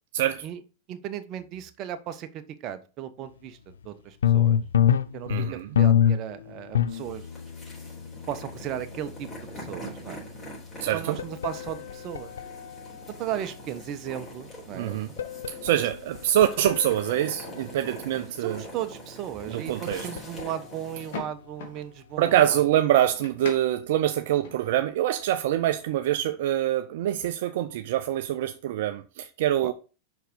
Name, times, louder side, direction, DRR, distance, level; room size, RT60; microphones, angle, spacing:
voice 1, 0.1-0.4 5.3-5.7 10.8-11.2 14.7-15.1 15.5-18.6 19.5-20.1 22.2-29.7, right 12 dB, 70° right, 0.5 m, -25 dB
voice 2, 0.9-7.3 8.3-9.3 9.5-10.3 10.9-12.3 13.2-15.0 18.4-22.6 29.6-29.7, right 11 dB, 45° right, 0.9 m, -36 dB
sound 1, 3.8-3.9 4.2-13.8 14.9-17.7 19.4-20.7, left 10 dB, 85° left, 0.4 m, -28 dB
sound 2, 6.9-21.2, equal, 25° left, 3.8 m, -44 dB
sound 3, 14.4-24.9, left 5 dB, 70° left, 1.8 m, -48 dB
5.7 x 4.6 x 5.3 m
hypercardioid pair, 105°, 0 cm